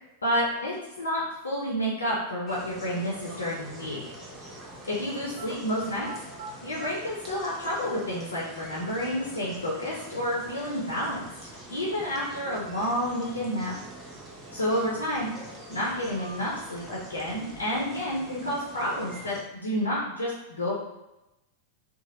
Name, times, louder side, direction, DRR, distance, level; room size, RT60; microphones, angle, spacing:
voice 1, 0.2-4.0 4.8-6.1 6.6-11.2 11.7-13.7 14.5-15.3 15.7-20.7, equal, 75° left, -5 dB, 0.6 m, -30 dB
sound 1, 2.5-19.4, right 1 dB, 15° right, 0.7 m, -45 dB
sound 2, 5.2-5.5 5.9-6.9 7.9-8.0 8.7-9.7 13.7-14.7 15.1-15.2 15.8-16.7 17.1-17.8 18.1-18.7, right 4 dB, 60° right, 0.3 m, -47 dB
2.8 x 2.4 x 2.9 m, 0.93 s
figure-of-eight pair, 90°, 0 cm